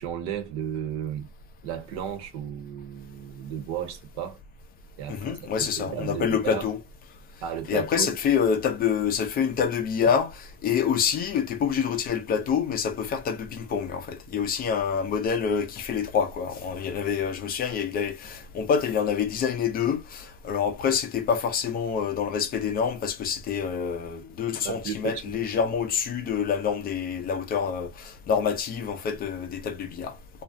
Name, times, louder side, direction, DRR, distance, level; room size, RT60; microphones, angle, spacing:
voice 1, 0.0-1.3 1.6-4.4 5.0-6.7 7.4-8.2 24.6-25.3, right 9 dB, 55° right, 0.8 m, -34 dB
voice 2, 5.1-6.8 7.7-30.1, left 7 dB, 25° left, 0.5 m, -27 dB
2.5 x 2.0 x 2.5 m
supercardioid pair, 130°, 35 cm